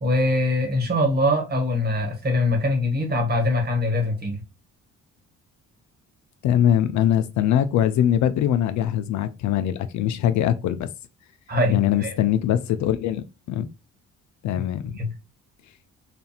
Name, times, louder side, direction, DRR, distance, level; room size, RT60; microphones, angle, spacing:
voice 1, 0.0-4.4 11.5-12.1 15.0-15.1, left 1 dB, 30° right, 1.2 m, -23 dB
voice 2, 6.4-10.9 11.7-13.6 14.4-15.0, left 10 dB, 70° left, 0.4 m, -22 dB
2.7 x 2.5 x 2.3 m
cardioid pair, 90°, 30 cm